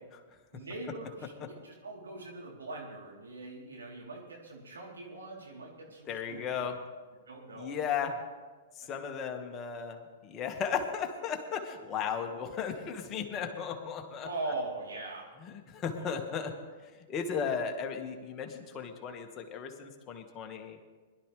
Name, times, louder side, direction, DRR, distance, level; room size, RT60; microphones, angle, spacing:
voice 1, 0.5-6.7 7.3-7.8 14.2-15.3 16.0-16.2, right 2 dB, 90° right, -2 dB, 3.5 m, -41 dB
voice 2, 6.1-6.7 7.6-8.1 8.7-10.0 10.2-14.3 15.4-16.5 17.1-20.8, left 7 dB, 30° left, 4 dB, 1.7 m, -35 dB
21.5 x 12.0 x 3.4 m, 1.4 s
hypercardioid pair, 115°, 0 cm